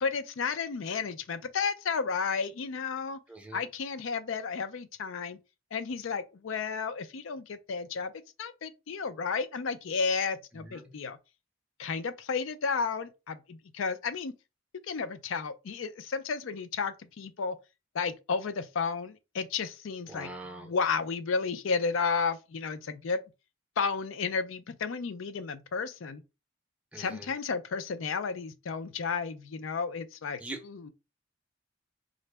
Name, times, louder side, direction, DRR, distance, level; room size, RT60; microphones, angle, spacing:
voice 1, 0.0-3.2 3.5-5.4 5.7-8.1 8.4-11.2 11.8-14.3 14.9-17.6 17.9-20.3 20.6-23.2 23.8-26.2 27.0-30.9, left 5 dB, 75° left, 0.4 m, -32 dB
voice 2, 3.3-3.7 10.5-10.9 20.1-20.7 26.9-27.3 30.4-30.6, right 2 dB, 5° right, 0.5 m, -43 dB
3.8 x 2.0 x 3.3 m
head